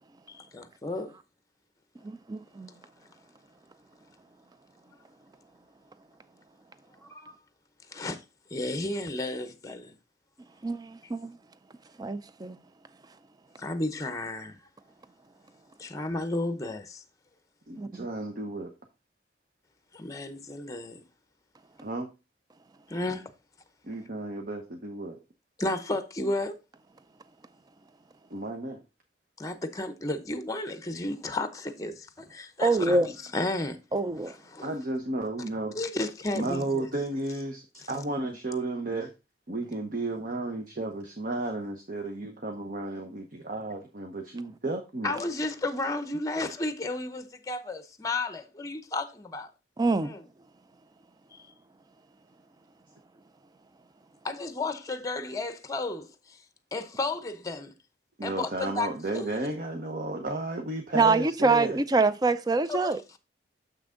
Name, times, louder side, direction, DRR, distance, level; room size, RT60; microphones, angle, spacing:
voice 1, 0.3-1.1 7.0-7.4 7.9-8.2 8.5-9.9 13.6-14.6 15.8-17.0 19.9-21.0 22.9-23.3 25.6-26.6 29.4-33.8 34.3-34.7 35.7-36.9 45.0-49.5 50.0-50.2 51.3-51.5 54.2-56.4 56.7-57.7 58.2-58.9 59.1-59.3 62.7-63.2, left 2 dB, 20° left, 0.7 m, -33 dB
voice 2, 2.0-2.7 10.6-11.4 12.0-12.6 17.8-18.1 32.6-33.1 33.9-34.3 49.8-50.1 60.9-63.0, right 3 dB, 20° right, 0.4 m, -25 dB
voice 3, 17.7-18.7 21.8-22.1 23.8-25.2 28.3-28.8 34.6-35.8 36.3-39.1 39.5-45.1 58.2-61.8, right 2 dB, 50° right, 0.9 m, -33 dB
6.9 x 6.0 x 3.7 m
head